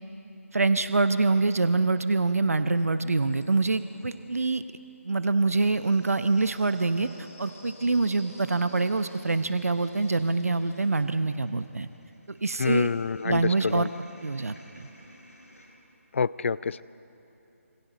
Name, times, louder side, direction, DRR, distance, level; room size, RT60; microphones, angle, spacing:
voice 1, 0.5-4.6 5.0-7.1 7.4-11.9 12.3-12.9 13.2-13.9 14.2-14.8, right 3 dB, 75° right, 11 dB, 0.8 m, -25 dB
sound 1, 2.6-4.5 5.3-15.7, left 1 dB, 90° left, 6.0 m, -53 dB
voice 2, 12.6-13.9 16.1-16.8, left 5 dB, 55° left, 19 dB, 0.5 m, -27 dB
27.0 x 27.0 x 4.1 m, 3.0 s
figure-of-eight pair, 150°, 8 cm